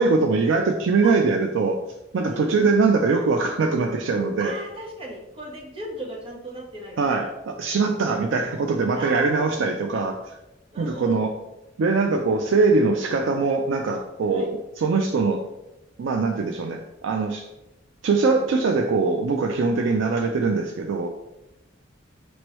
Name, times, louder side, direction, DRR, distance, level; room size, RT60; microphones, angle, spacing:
voice 1, 0.0-1.8 2.1-4.6 7.0-10.4 10.8-11.3 11.8-15.4 16.0-17.5 18.0-21.1, right 4 dB, 80° right, 4 dB, 0.4 m, -22 dB
voice 2, 2.3-2.7 4.4-7.2 8.9-9.6 10.7-11.2 14.3-14.5 16.7-16.9, right 1 dB, 30° right, -3 dB, 1.1 m, -37 dB
5.2 x 3.1 x 3.0 m, 0.94 s
head